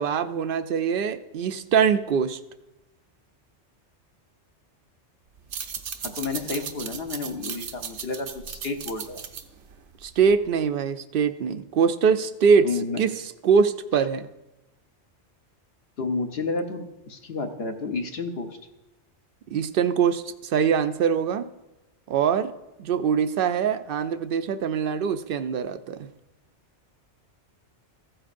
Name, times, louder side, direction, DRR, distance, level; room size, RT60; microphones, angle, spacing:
voice 1, 0.0-2.4 10.0-12.7 13.0-13.1 13.4-14.3 19.5-21.5 22.1-22.5 22.8-26.0, right 6 dB, 60° right, 11 dB, 0.6 m, -23 dB
sound 1, 5.4-10.5, right 7 dB, 80° right, 1.0 m, -37 dB
voice 2, 6.2-9.2 12.6-13.0 16.0-18.5, left 3 dB, 60° left, 4 dB, 1.1 m, -31 dB
15.0 x 8.8 x 2.5 m, 0.95 s
omnidirectional pair, 1.2 m